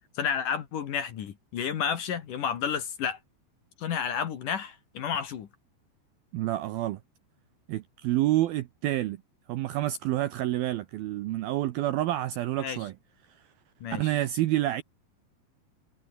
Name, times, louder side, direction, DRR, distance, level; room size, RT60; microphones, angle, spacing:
voice 1, 0.2-3.2 3.8-5.5 12.6-12.8 13.8-14.1, left 7 dB, 55° left, 2.8 m, -31 dB
voice 2, 6.3-7.0 7.7-9.2 9.5-12.9 13.9-14.8, right 14 dB, 75° right, 2.3 m, -28 dB
omnidirectional pair, 5.2 m